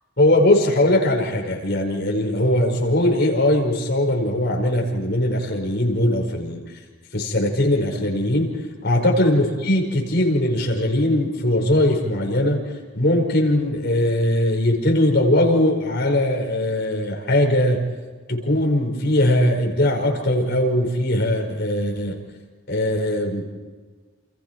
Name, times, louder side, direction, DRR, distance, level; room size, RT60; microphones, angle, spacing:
voice 1, 0.2-6.6 7.1-8.5 8.8-12.6 12.9-17.8 18.3-22.2 22.7-23.4, left 1 dB, 50° left, 1 dB, 5.1 m, -20 dB
28.5 x 28.0 x 4.6 m, 1.4 s
head